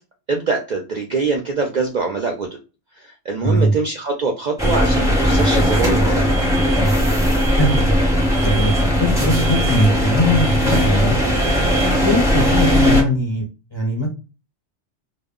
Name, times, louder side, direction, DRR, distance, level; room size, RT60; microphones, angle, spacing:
voice 1, 0.3-2.5 2.9-6.4, right 4 dB, 65° right, 2 dB, 0.4 m, -23 dB
voice 2, 3.4-3.7 7.6-8.0 8.4-8.7 9.0-11.5 12.0-14.1, equal, 40° left, 0 dB, 0.4 m, -20 dB
sound 1, 4.6-13.0, equal, 5° right, 0.6 m, -18 dB
2.1 x 2.1 x 3.5 m, 0.32 s
omnidirectional pair, 1.2 m